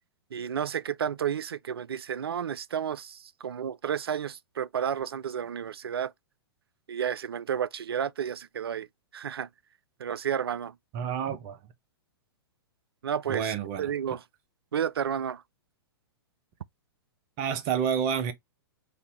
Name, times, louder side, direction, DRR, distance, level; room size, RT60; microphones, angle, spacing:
voice 1, 0.3-6.1 6.9-8.9 9.1-9.5 10.0-10.7 13.0-14.2 14.7-15.4, right 8 dB, 70° right, 0.4 m, -31 dB
voice 2, 10.9-11.6 13.3-13.9 17.4-18.3, right 8 dB, 35° right, 0.8 m, -29 dB
3.2 x 2.6 x 4.2 m
figure-of-eight pair, 110°, 13 cm